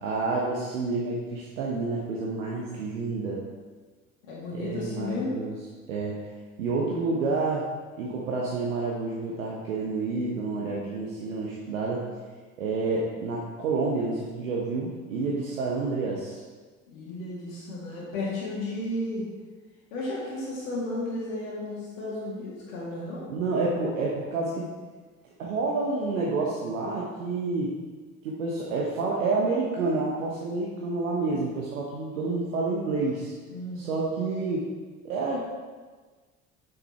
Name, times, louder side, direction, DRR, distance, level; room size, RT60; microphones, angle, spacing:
voice 1, 0.0-3.4 4.5-5.5 5.9-6.2 6.6-7.7 8.0-12.0 12.6-16.4 23.3-24.7 25.4-27.7 28.2-33.3 33.8-34.7 35.0-35.5, right 3 dB, 80° right, -3 dB, 1.0 m, -29 dB
voice 2, 4.2-5.4 16.9-19.2 19.9-23.2 33.5-33.8, left 2 dB, 75° left, -5 dB, 1.9 m, -33 dB
6.1 x 5.8 x 4.3 m, 1.4 s
figure-of-eight pair, 60°, 40 cm